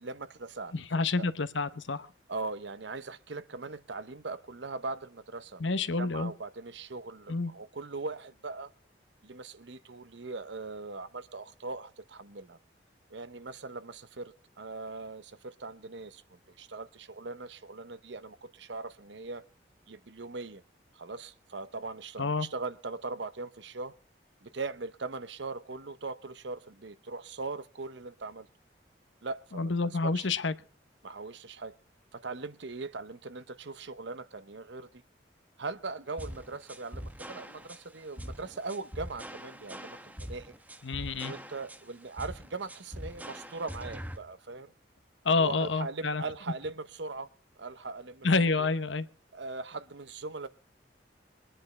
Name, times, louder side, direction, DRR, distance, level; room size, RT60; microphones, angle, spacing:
voice 1, 0.0-1.3 2.3-8.7 9.2-12.6 13.1-16.2 16.5-19.4 19.9-20.6 20.9-23.9 24.4-28.5 29.2-30.3 31.0-31.7 32.1-35.0 35.6-40.5 41.2-44.7 45.3-47.3 47.6-48.7 49.3-50.5, right 3 dB, 75° right, 13 dB, 0.9 m, -40 dB
voice 2, 0.7-2.1 5.6-6.3 7.3-7.5 22.2-22.5 29.5-30.5 40.8-41.3 45.2-46.2 48.2-49.1, left 3 dB, 85° left, 13 dB, 1.0 m, -28 dB
sound 1, 36.2-44.2, equal, 10° right, 1.1 m, -43 dB
23.0 x 10.0 x 4.2 m, 0.36 s
head